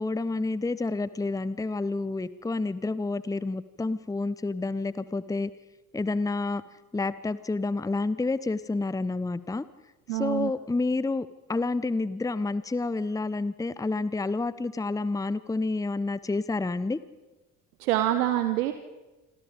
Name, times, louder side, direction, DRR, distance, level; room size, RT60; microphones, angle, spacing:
voice 1, 0.0-5.5 5.9-6.6 6.9-9.6 10.1-17.0, left 3 dB, 10° left, 17 dB, 0.9 m, -29 dB
voice 2, 10.1-10.5 17.8-18.7, right 13 dB, 70° right, 9 dB, 1.2 m, -25 dB
27.0 x 23.5 x 5.2 m, 1.1 s
figure-of-eight pair, 50°, 44 cm